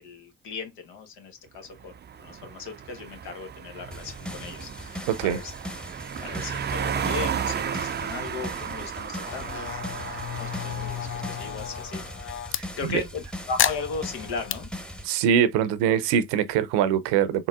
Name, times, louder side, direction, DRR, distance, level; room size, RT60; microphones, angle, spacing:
voice 1, 0.0-1.9 2.2-5.5 6.2-12.0 12.8-14.7, left 5 dB, 80° left, 1.2 m, -37 dB
sound 1, 1.7-12.0, right 8 dB, 25° right, 0.4 m, -34 dB
sound 2, 3.9-15.1, equal, ahead, 0.9 m, -40 dB
voice 2, 5.1-5.4 12.6-13.0 15.0-17.5, right 9 dB, 80° right, 0.7 m, -23 dB
sound 3, 9.3-12.6 13.6-14.6, left 9 dB, 35° left, 0.4 m, -31 dB
3.9 x 3.8 x 2.3 m
hypercardioid pair, 50°, 41 cm